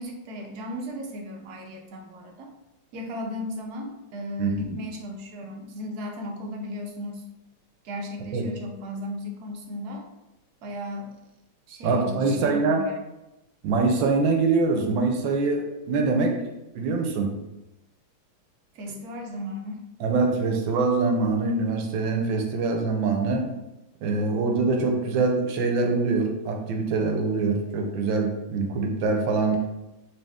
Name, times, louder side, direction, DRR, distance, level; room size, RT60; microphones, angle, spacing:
voice 1, 0.0-2.5 2.9-7.2 7.8-10.1 10.6-11.2 11.7-13.0 18.7-19.8, left 1 dB, 65° right, 2 dB, 1.1 m, -36 dB
voice 2, 4.4-4.8 8.3-8.4 11.8-12.8 13.6-16.4 16.7-17.3 20.0-23.4 24.0-29.6, right 3 dB, 80° right, 2 dB, 1.4 m, -24 dB
4.2 x 2.8 x 3.4 m, 0.95 s
omnidirectional pair, 2.1 m